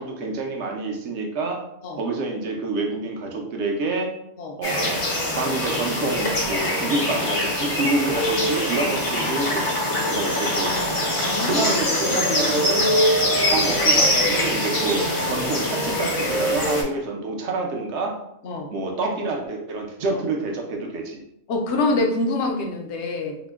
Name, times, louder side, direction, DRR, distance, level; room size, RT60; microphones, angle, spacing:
voice 1, 0.0-1.6 2.0-4.1 4.6-5.0 5.3-10.7 11.5-12.9 13.5-18.2 18.7-21.2, right 3 dB, 65° right, 2 dB, 0.8 m, -27 dB
sound 1, 4.6-16.8, left 1 dB, 40° left, 0.5 m, -23 dB
sound 2, 4.8-16.8, left 1 dB, 85° left, 1.1 m, -32 dB
voice 2, 11.1-12.3 13.2-13.4 18.4-18.7 20.1-20.2 21.5-23.5, left 2 dB, 65° left, 2 dB, 0.8 m, -27 dB
2.9 x 2.0 x 3.4 m, 0.79 s
omnidirectional pair, 1.3 m